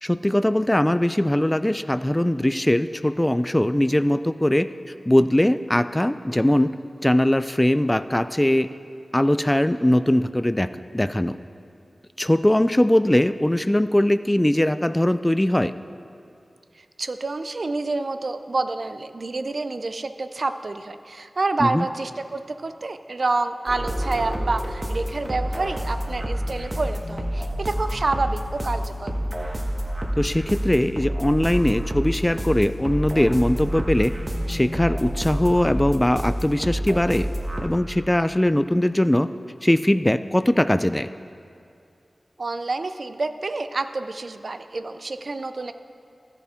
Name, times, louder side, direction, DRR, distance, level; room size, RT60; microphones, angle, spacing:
voice 1, 0.0-4.7 5.1-6.7 7.0-8.7 9.1-10.7 10.9-11.4 12.2-15.7 21.6-21.9 30.2-34.1 34.5-37.3 37.6-39.3 39.6-41.1, left 1 dB, 15° left, 13 dB, 0.3 m, -20 dB
voice 2, 16.7-29.1 42.4-45.7, right 3 dB, 65° right, 10 dB, 0.4 m, -28 dB
sound 1, 23.7-37.6, equal, 30° right, 1.3 m, -28 dB
13.0 x 6.9 x 4.4 m, 2.5 s
cardioid pair, 45°, 0 cm